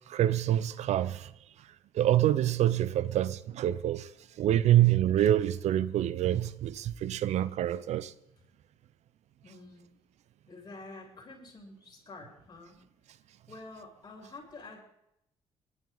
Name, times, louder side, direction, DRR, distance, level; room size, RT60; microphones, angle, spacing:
voice 1, 0.1-1.3 1.9-4.1 4.4-8.1, right 12 dB, 75° right, 0.6 m, -26 dB
voice 2, 9.4-9.8 10.5-12.7 13.5-14.8, left 3 dB, 35° left, 7.1 m, -48 dB
21.0 x 12.0 x 4.0 m
cardioid pair, 80°, 12 cm